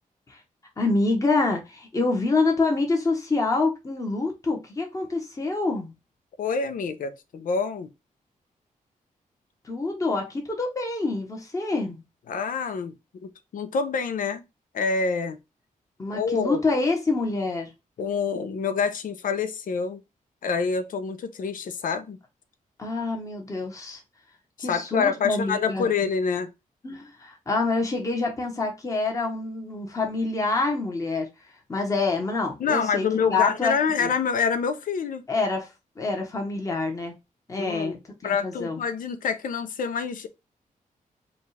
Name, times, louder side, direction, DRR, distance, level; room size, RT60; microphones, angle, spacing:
voice 1, 0.8-5.9 9.6-12.0 16.0-17.7 22.8-24.0 24.6-26.1 26.8-31.3 31.7-33.7 34.0-34.1 35.3-35.7 36.0-37.2 37.5-38.0 38.2-38.8, left 3 dB, 25° left, 1.1 m, -26 dB
voice 2, 6.4-7.9 12.3-12.9 13.2-14.4 14.7-15.4 16.1-16.6 18.0-20.0 20.4-22.2 24.6-26.5 32.6-35.2 37.6-38.0 38.2-40.3, left 5 dB, 75° left, 0.7 m, -26 dB
5.2 x 2.4 x 3.2 m
wide cardioid pair, 145°, 14 cm